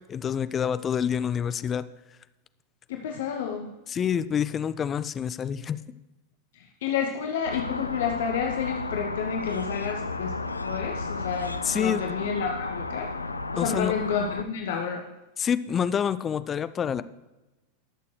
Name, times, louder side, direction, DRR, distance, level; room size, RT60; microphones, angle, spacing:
voice 1, 0.1-1.9 3.9-5.8 11.6-12.0 13.6-13.9 15.4-17.0, left 8 dB, 25° left, 14 dB, 0.5 m, -27 dB
voice 2, 2.9-3.7 6.5-13.1 13.5-15.0, left 7 dB, 55° left, 3 dB, 0.9 m, -30 dB
sound 1, 7.5-14.4, left 3 dB, 80° left, 0.5 m, -33 dB
20.0 x 6.8 x 3.2 m, 1.1 s
figure-of-eight pair, 90°, 0 cm